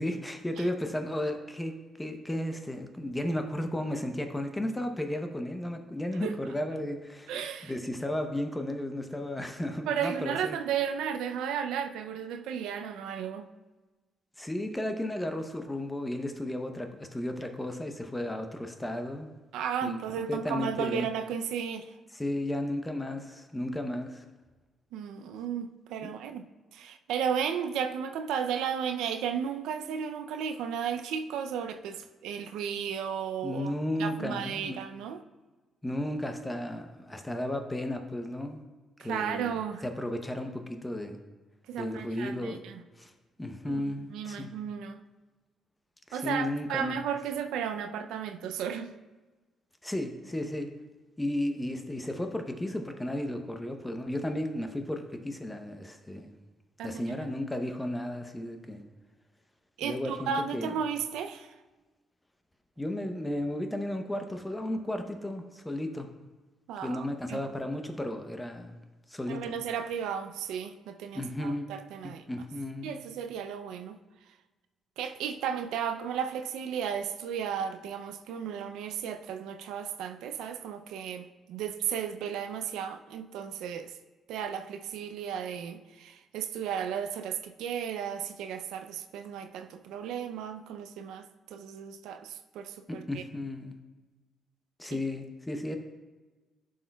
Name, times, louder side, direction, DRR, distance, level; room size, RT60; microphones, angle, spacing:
voice 1, 0.0-1.7 2.0-10.6 14.4-19.3 19.8-20.0 20.3-21.1 22.1-24.2 26.0-26.4 33.4-34.8 35.8-38.6 39.0-39.5 39.8-41.2 41.8-43.1 43.4-44.5 46.1-47.0 49.8-50.7 51.2-56.3 56.8-58.8 59.8-60.8 62.8-66.1 66.8-68.8 69.1-69.5 71.1-71.7 72.0-73.0 92.9-93.7 94.8-95.8, left 1 dB, 10° left, 5 dB, 0.7 m, -34 dB
voice 2, 7.3-7.7 9.9-13.5 19.5-21.9 24.9-26.5 26.7-33.7 34.0-35.2 39.0-39.8 41.7-42.8 43.7-45.0 46.1-48.9 56.8-57.3 59.8-61.5 66.7-67.4 69.3-72.2 72.8-74.0 75.0-83.9 84.3-93.2 94.9-95.0, right 8 dB, 90° right, 8 dB, 0.4 m, -34 dB
11.5 x 6.3 x 2.3 m, 1.3 s
cardioid pair, 90°, 0 cm